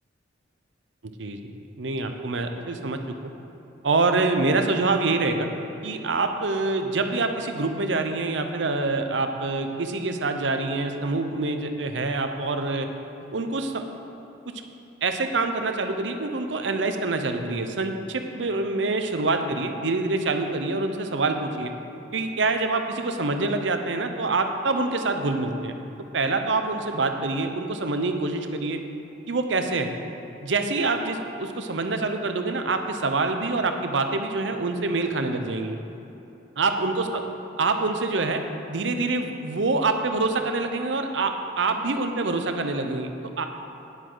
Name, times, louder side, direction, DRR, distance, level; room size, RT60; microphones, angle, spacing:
voice 1, 1.2-3.3 3.8-5.5 5.8-12.9 13.3-13.8 15.0-21.7 22.1-25.8 26.1-28.8 29.3-29.9 30.4-35.8 36.6-37.2 37.6-38.4 38.7-43.5, right 3 dB, 80° right, 6 dB, 0.8 m, -26 dB
11.0 x 9.8 x 3.9 m, 2.9 s
head